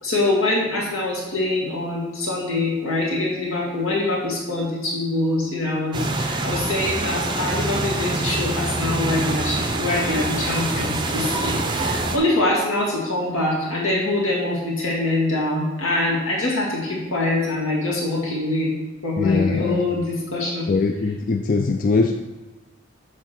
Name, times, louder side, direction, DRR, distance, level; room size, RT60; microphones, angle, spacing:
voice 1, 0.0-18.7 19.0-20.7, left 2 dB, 80° left, -4 dB, 2.3 m, -24 dB
sound 1, 5.9-12.2, right 2 dB, 20° right, 0.5 m, -25 dB
voice 2, 19.2-19.9 20.7-22.1, left 4 dB, 40° left, 4 dB, 0.3 m, -21 dB
7.4 x 3.8 x 5.9 m, 1.1 s
head